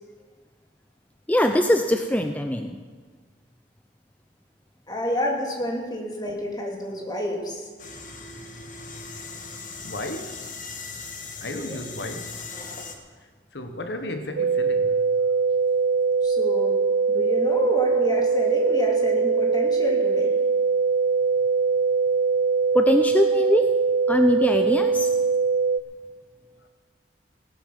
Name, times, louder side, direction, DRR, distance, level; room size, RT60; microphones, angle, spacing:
voice 1, 1.3-2.8 22.7-23.7 24.1-25.1, left 1 dB, 10° left, 0.5 m, -22 dB
voice 2, 4.9-7.6 11.5-11.9 16.2-16.8 17.1-20.3, equal, 25° left, 2.4 m, -29 dB
sound 1, 7.8-13.0, left 4 dB, 50° left, 1.5 m, -39 dB
voice 3, 9.8-10.5 11.4-12.4 13.5-15.0, left 1 dB, 80° left, 1.2 m, -34 dB
sound 2, 14.4-25.8, right 5 dB, 80° right, 0.7 m, -22 dB
17.5 x 12.0 x 5.4 m
head